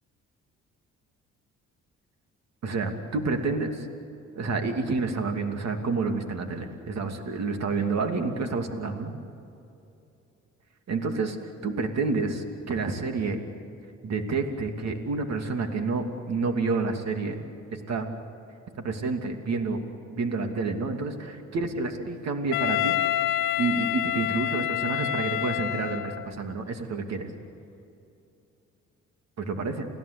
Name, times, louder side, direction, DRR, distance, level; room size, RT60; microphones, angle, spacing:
voice 1, 2.6-3.9 4.3-9.1 10.9-11.4 11.6-13.4 14.0-17.4 17.7-18.1 18.8-19.8 20.1-23.0 23.6-27.3 29.4-29.9, right 3 dB, 60° right, 5 dB, 2.7 m, -29 dB
Wind instrument woodwind instrument, 22.5-26.3, left 13 dB, 80° left, 0.7 m, -27 dB
29.0 x 17.0 x 8.3 m, 2.7 s
cardioid pair, 90°, 30 cm